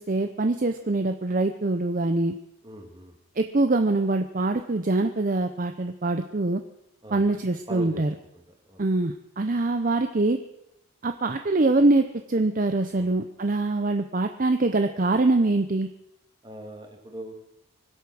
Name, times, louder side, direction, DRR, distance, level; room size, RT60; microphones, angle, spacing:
voice 1, 0.0-2.3 3.4-6.6 7.1-8.1 8.8-10.4 11.0-15.9, right 2 dB, 40° right, 7 dB, 0.6 m, -24 dB
voice 2, 2.6-3.1 7.0-7.2 7.7-8.0 8.3-8.4 8.7-8.8 12.9-13.1 16.4-17.3, right 1 dB, 20° right, 2 dB, 2.2 m, -40 dB
24.5 x 8.3 x 6.2 m, 0.84 s
head